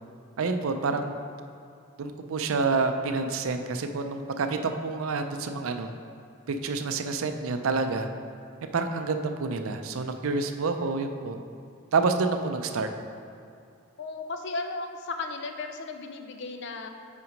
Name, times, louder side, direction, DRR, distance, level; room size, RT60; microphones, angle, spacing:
voice 1, 0.4-1.2 2.0-5.9 6.5-8.1 8.7-11.4 11.9-12.9, right 4 dB, 75° right, 7 dB, 0.5 m, -28 dB
voice 2, 14.0-16.9, left 3 dB, 55° left, 6 dB, 0.5 m, -35 dB
5.7 x 4.3 x 5.1 m, 2.6 s
head